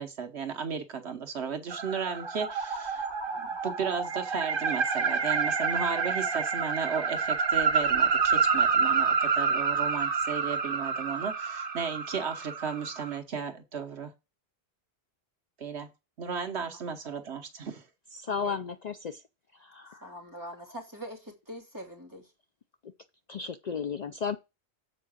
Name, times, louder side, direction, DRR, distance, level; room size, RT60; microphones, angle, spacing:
voice 1, 0.0-14.1 15.6-15.9 16.2-17.9, right 6 dB, 75° right, 1.4 m, -35 dB
sound 1, 1.7-13.2, right 5 dB, 55° right, 1.6 m, -28 dB
voice 2, 18.2-19.2 19.6-20.0 23.3-24.4, left 6 dB, 50° left, 0.6 m, -34 dB
voice 3, 20.0-22.3, equal, 15° right, 2.9 m, -43 dB
7.5 x 4.7 x 6.3 m
omnidirectional pair, 1.1 m